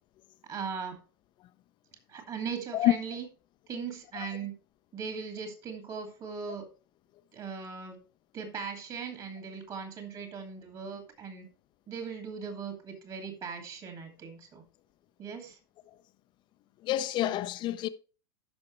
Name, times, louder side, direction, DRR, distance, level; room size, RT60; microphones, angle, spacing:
voice 1, 0.5-1.0 2.1-3.2 3.7-4.5 4.9-6.7 7.3-8.0 8.3-11.5 11.9-14.6 15.2-15.6, right 6 dB, 35° right, 2.4 m, -39 dB
voice 2, 16.8-17.9, left 14 dB, 40° left, 0.7 m, -27 dB
13.0 x 5.8 x 3.2 m
figure-of-eight pair, 85°, 13 cm